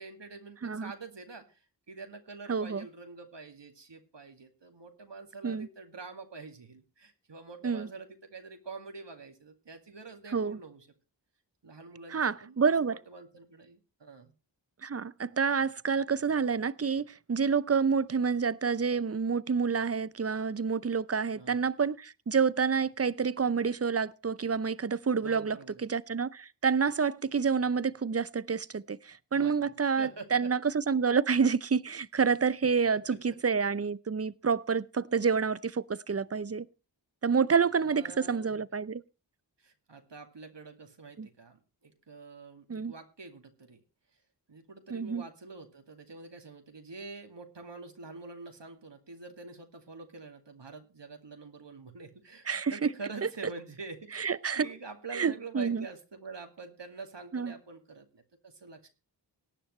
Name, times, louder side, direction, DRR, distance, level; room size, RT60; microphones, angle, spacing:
voice 1, 0.0-1.6 1.9-10.9 11.6-14.3 21.3-21.6 25.2-25.9 29.3-30.5 32.9-33.2 37.8-38.6 39.6-43.8 44.5-58.9, right 4 dB, 70° right, 2.3 m, -46 dB
voice 2, 0.6-0.9 2.5-2.9 5.4-5.7 7.6-7.9 10.3-10.6 12.1-13.0 14.8-36.7 37.2-39.0 41.2-41.3 42.7-42.9 44.9-45.2 52.5-52.9 53.2-53.3 54.1-54.7 55.1-55.9 57.3-57.5, right 5 dB, 35° right, 0.7 m, -28 dB
18.5 x 10.0 x 3.2 m
wide cardioid pair, 50°, 45 cm